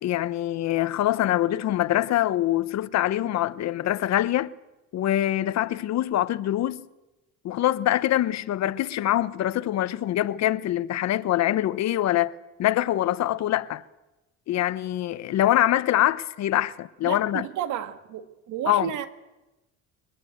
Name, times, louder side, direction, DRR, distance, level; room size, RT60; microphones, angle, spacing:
voice 1, 0.0-4.5 4.9-6.9 7.4-12.3 12.6-13.8 14.5-17.4 18.7-18.9, left 13 dB, 60° left, 1.0 m, -24 dB
voice 2, 17.0-19.1, right 11 dB, 75° right, 2.0 m, -32 dB
23.5 x 20.5 x 8.0 m
cardioid pair, 115°, 30 cm